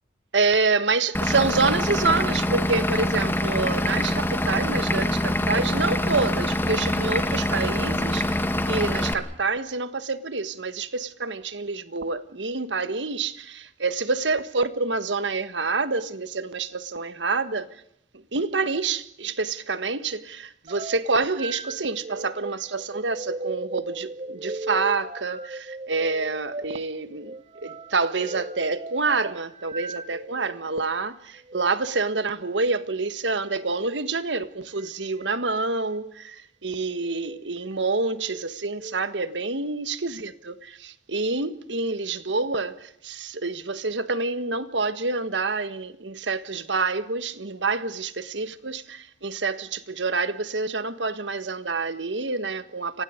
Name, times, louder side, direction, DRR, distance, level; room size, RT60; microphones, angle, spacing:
voice 1, 0.3-17.8 18.1-27.4 27.6-53.0, right 3 dB, 85° right, 1.6 m, -27 dB
Vehicle / Engine, 1.1-9.1, left 1 dB, 15° left, 2.1 m, -25 dB
sound 1, 20.7-30.6 31.4-31.7 33.6-34.0 34.8-35.3 35.8-36.1 36.9-37.4 37.9-39.0, right 2 dB, 35° right, 1.1 m, -38 dB
29.5 x 25.0 x 5.2 m
head